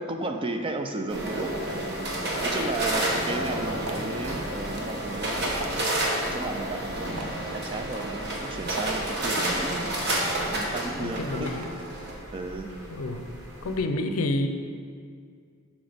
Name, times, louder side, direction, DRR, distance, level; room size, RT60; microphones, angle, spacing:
voice 1, 0.0-2.1 2.4-5.9 6.3-10.0 10.4-11.5 12.3-12.7, right 2 dB, 25° right, 6 dB, 0.3 m, -34 dB
sound 1, 1.1-13.8, right 1 dB, 50° right, 1.1 m, -30 dB
sound 2, 2.9-11.6, right 2 dB, 80° right, 0.8 m, -45 dB
voice 2, 11.0-11.7 12.9-13.3 13.6-14.5, left 2 dB, 75° left, 7 dB, 0.5 m, -29 dB
7.6 x 6.1 x 3.5 m, 2.2 s
head